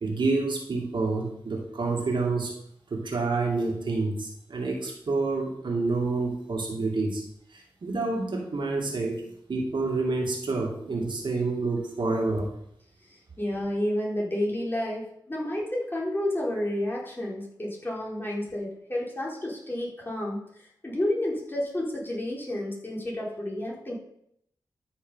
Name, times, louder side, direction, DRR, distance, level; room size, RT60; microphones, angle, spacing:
voice 1, 0.0-2.5 2.9-7.2 7.5-9.2 9.5-12.5, right 3 dB, 70° right, 0 dB, 2.4 m, -28 dB
voice 2, 13.4-20.5 20.8-23.9, left 1 dB, 25° left, -4 dB, 4.4 m, -30 dB
13.0 x 6.4 x 5.7 m, 0.74 s
cardioid pair, 65°, 8 cm